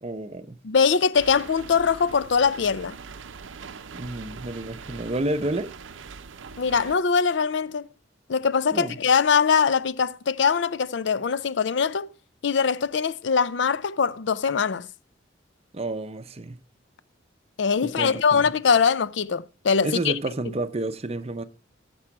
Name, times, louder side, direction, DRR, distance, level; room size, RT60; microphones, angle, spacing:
voice 1, 0.0-0.6 3.9-5.7 8.7-9.0 15.7-16.6 17.8-18.5 19.8-21.4, right 2 dB, 30° right, 0.6 m, -30 dB
voice 2, 0.6-3.0 6.6-7.9 8.3-12.1 12.4-14.9 17.6-20.1, left 6 dB, 65° left, 0.5 m, -22 dB
sound 1, 1.1-7.0, right 5 dB, 80° right, 0.6 m, -42 dB
14.5 x 6.2 x 4.6 m
head